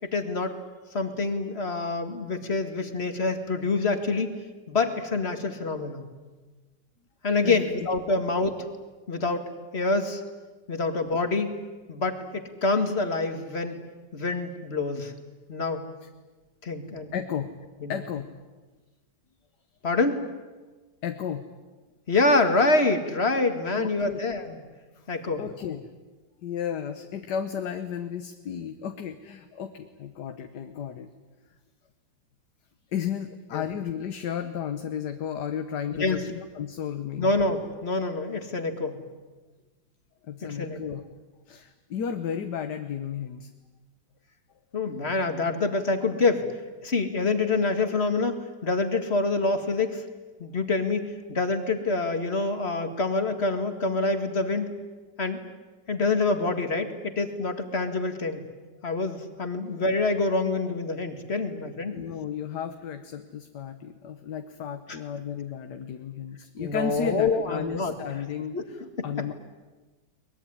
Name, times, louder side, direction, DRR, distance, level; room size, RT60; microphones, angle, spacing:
voice 1, 0.0-0.5 0.9-4.3 4.7-6.0 7.2-8.5 9.1-10.2 10.7-11.6 11.9-13.8 14.1-15.1 15.5-15.9 16.6-17.1 17.8-17.9 19.8-20.2 22.1-24.6 25.1-25.4 33.5-33.6 36.0-36.2 37.2-39.0 40.4-40.8 44.7-46.4 46.8-50.0 50.4-54.7 55.2-55.4 55.9-58.4 58.8-62.0 66.6-67.9 68.5-68.6 69.0-69.1, left 3 dB, 35° left, 7 dB, 2.2 m, -26 dB
voice 2, 7.4-7.9 16.0-16.1 17.1-17.5 17.9-18.3 21.0-21.5 23.7-24.2 24.9-25.1 25.4-25.9 26.4-31.1 32.9-37.3 40.2-41.0 41.5-43.5 61.9-69.3, left 8 dB, 70° left, 8 dB, 1.6 m, -33 dB
23.0 x 21.0 x 9.9 m, 1.3 s
omnidirectional pair, 2.0 m